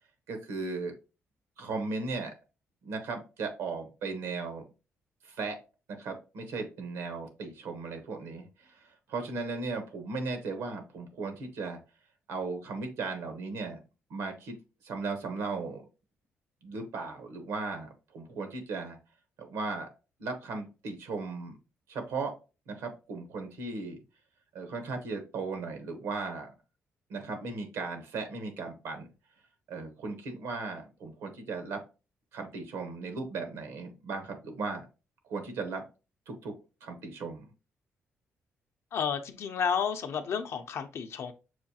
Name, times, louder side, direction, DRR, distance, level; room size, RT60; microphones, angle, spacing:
voice 1, 0.3-0.9 1.6-2.3 2.8-4.6 5.2-5.6 5.9-11.8 12.3-13.8 14.1-14.6 14.8-15.8 16.6-19.0 19.4-19.9 20.2-21.5 21.9-22.3 22.7-24.0 24.5-26.5 27.1-29.1 29.7-31.8 32.3-34.9 35.2-35.8 36.3-36.5 36.8-37.5, right 4 dB, 90° right, 6 dB, 1.0 m, -36 dB
voice 2, 38.9-41.3, left 7 dB, 65° left, 8 dB, 0.5 m, -31 dB
6.2 x 2.3 x 2.8 m, 0.31 s
cardioid pair, 90°, 5 cm